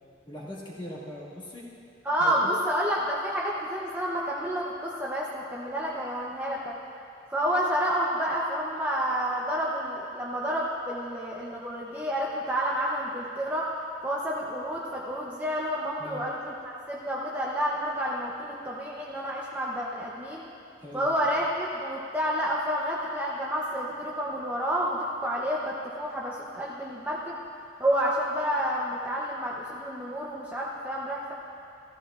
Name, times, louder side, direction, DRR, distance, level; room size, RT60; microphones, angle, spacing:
voice 1, 0.3-1.7 2.2-2.6 16.0-16.2 20.8-21.4, left 1 dB, 25° left, -6 dB, 2.0 m, -40 dB
voice 2, 2.0-6.8 7.3-13.7 14.0-20.5 20.9-27.4 27.8-31.3, equal, 10° right, -5 dB, 0.8 m, -29 dB
16.0 x 14.0 x 2.5 m, 2.6 s
head